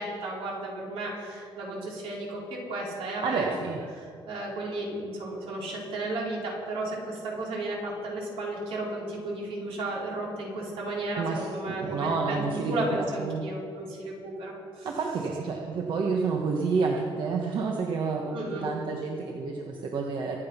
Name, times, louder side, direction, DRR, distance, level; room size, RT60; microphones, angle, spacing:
voice 1, 0.0-3.5 3.9-14.9 18.3-18.7, right 2 dB, 75° right, -3 dB, 4.8 m, -34 dB
voice 2, 3.2-3.8 11.2-13.4 14.8-20.4, right 4 dB, 55° right, 0 dB, 1.4 m, -29 dB
25.0 x 9.2 x 5.8 m, 2.3 s
cardioid pair, 175°, 10 cm